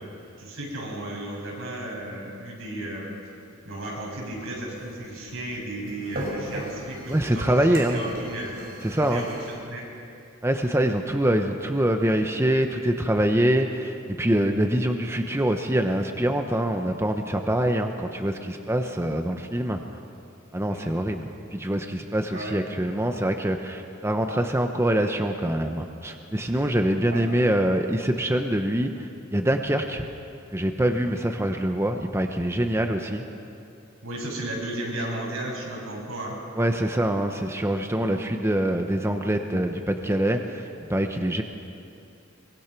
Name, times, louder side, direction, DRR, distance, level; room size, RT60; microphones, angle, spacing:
voice 1, 0.4-3.1 3.7-8.6 8.9-9.4 9.7-9.8 20.7-20.9 22.3-22.6 27.1-27.2 34.0-36.4, right 1 dB, 75° right, -2 dB, 6.8 m, -34 dB
sound 1, 4.4-9.5, right 1 dB, 45° right, 5.9 m, -39 dB
voice 2, 7.1-8.0 8.8-9.2 10.4-19.8 20.5-30.1 30.5-33.2 36.6-41.4, right 1 dB, 10° right, 4 dB, 0.9 m, -24 dB
23.5 x 22.5 x 6.0 m, 2.6 s
head